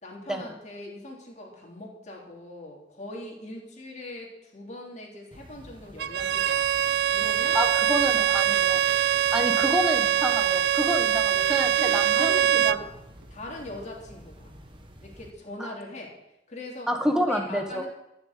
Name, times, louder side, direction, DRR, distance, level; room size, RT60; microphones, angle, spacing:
voice 1, 0.0-6.7 7.1-7.6 8.0-8.1 9.4-9.7 11.0-11.3 11.7-12.9 13.3-14.5 15.0-16.1 16.5-16.9 17.3-17.9, left 1 dB, 40° left, -1 dB, 3.5 m, -41 dB
sound 1, 5.3-15.3, equal, 30° right, 1.5 m, -49 dB
Bowed string instrument, 6.0-12.8, right 10 dB, 70° right, 0.4 m, -23 dB
voice 2, 7.5-8.8 9.3-12.8 15.6-15.7 16.9-17.8, equal, 5° right, 5 dB, 1.4 m, -28 dB
14.0 x 7.2 x 8.3 m, 0.87 s
head